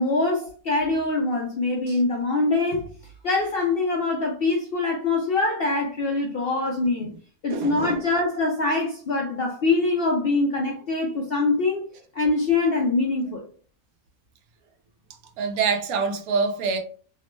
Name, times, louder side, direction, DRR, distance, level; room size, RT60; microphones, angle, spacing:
voice 1, 0.0-2.9 3.2-7.1 7.4-11.9 12.1-13.4, left 3 dB, 65° left, 0.5 m, -24 dB
voice 2, 7.5-8.0 15.4-16.8, right 5 dB, 80° right, 1.0 m, -25 dB
2.9 x 2.0 x 3.1 m
omnidirectional pair, 1.5 m